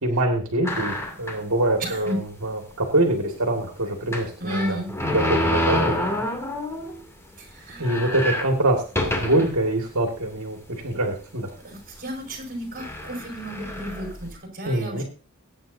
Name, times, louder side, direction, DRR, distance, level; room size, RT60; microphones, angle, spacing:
voice 1, 0.0-4.8 5.1-6.0 7.8-11.5 14.7-15.0, right 1 dB, 70° right, 2 dB, 2.0 m, -24 dB
sound 1, 0.6-1.5 2.1-2.2 2.4-2.5 4.1-7.0 7.4-7.5 7.7-9.6 10.2-10.3 11.2-11.5 12.3-12.4 12.8-14.3, left 1 dB, 15° left, 2.6 m, -27 dB
voice 2, 1.8-2.2 4.4-4.9 7.4-7.9 11.6-15.0, equal, 45° right, 2 dB, 4.5 m, -32 dB
21.5 x 9.0 x 2.7 m, 0.37 s
head